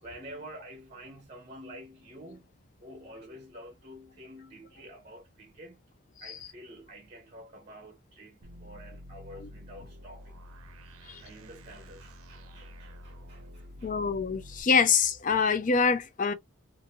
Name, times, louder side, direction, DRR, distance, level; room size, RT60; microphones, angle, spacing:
voice 1, 0.0-2.5 2.8-5.8 6.2-10.4 11.0-13.9, equal, 30° right, 0.6 m, -48 dB
sound 1, 8.4-14.6, equal, 85° right, 0.6 m, -48 dB
voice 2, 13.8-16.3, left 5 dB, 35° left, 0.4 m, -25 dB
2.6 x 2.5 x 2.7 m
head